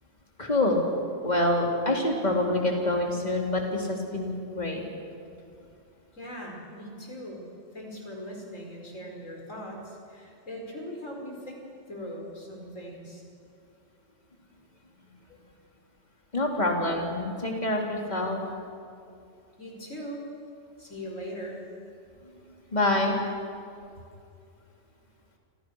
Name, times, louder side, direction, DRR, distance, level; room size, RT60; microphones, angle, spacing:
voice 1, 0.4-0.8 1.2-4.8 16.3-18.4 22.7-23.2, left 1 dB, 35° left, 0 dB, 3.9 m, -26 dB
voice 2, 6.1-7.5 7.7-11.6 11.9-13.2 19.6-20.2 20.8-21.7, equal, 85° left, 0 dB, 5.7 m, -40 dB
30.0 x 26.5 x 6.5 m, 2.5 s
omnidirectional pair, 1.3 m